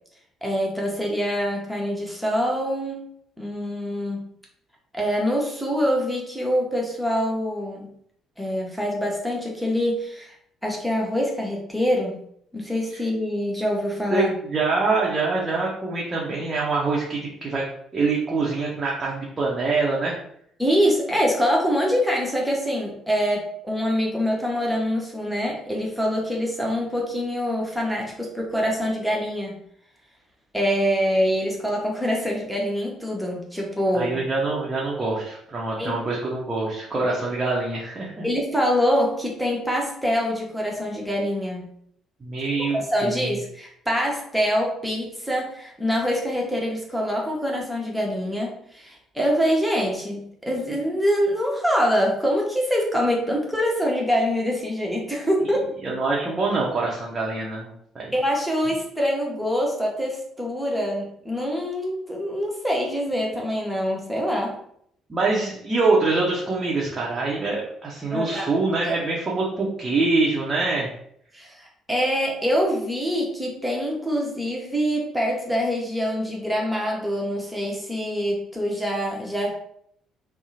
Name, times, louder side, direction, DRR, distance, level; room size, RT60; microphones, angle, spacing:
voice 1, 0.4-3.1 3.4-4.3 4.9-7.9 8.4-10.3 10.6-12.2 12.5-14.3 20.6-29.6 30.5-34.2 35.8-35.9 38.2-41.7 42.7-55.7 58.1-64.6 68.1-68.5 68.8-68.9 71.3-79.5, equal, 5° right, -2 dB, 0.8 m, -25 dB
voice 2, 14.1-17.6 17.9-20.1 33.9-38.3 42.2-43.3 55.8-57.7 58.0-58.1 65.1-70.9, right 3 dB, 25° right, -5 dB, 0.6 m, -25 dB
2.7 x 2.0 x 2.7 m, 0.69 s
figure-of-eight pair, 45°, 0 cm